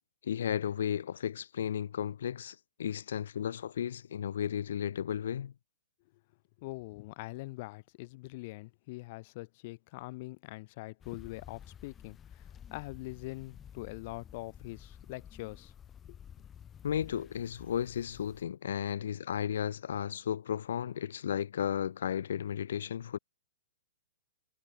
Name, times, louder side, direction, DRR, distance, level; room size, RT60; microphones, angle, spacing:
voice 1, 0.2-5.5 16.8-23.2, left 9 dB, 70° left, 0.5 m, -34 dB
voice 2, 6.6-15.7 16.1-16.2, left 22 dB, 40° left, 2.5 m, -43 dB
sound 1, 11.0-18.4, left 9 dB, 15° left, 2.1 m, -52 dB
hypercardioid pair, 145°, 0 cm